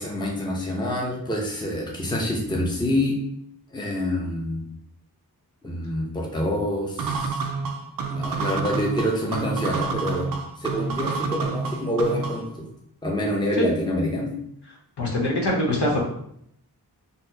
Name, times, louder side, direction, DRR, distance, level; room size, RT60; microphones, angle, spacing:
voice 1, 0.0-3.2 3.7-4.6 5.6-7.4 8.1-10.3 10.6-12.7 13.0-14.3, left 1 dB, 10° left, -2 dB, 0.6 m, -26 dB
sound 1, 7.0-12.5, right 4 dB, 60° right, 0.5 m, -28 dB
voice 2, 15.0-16.0, left 1 dB, 80° left, -2 dB, 1.0 m, -23 dB
4.1 x 2.1 x 2.6 m, 0.72 s
wide cardioid pair, 70°, 40 cm